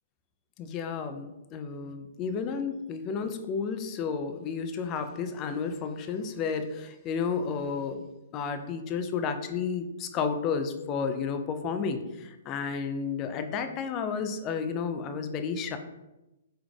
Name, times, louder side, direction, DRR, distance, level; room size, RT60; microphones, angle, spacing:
voice 1, 0.6-15.8, left 5 dB, 30° left, 8 dB, 0.4 m, -32 dB
4.7 x 3.4 x 2.3 m, 1.0 s
figure-of-eight pair, 120°, 0 cm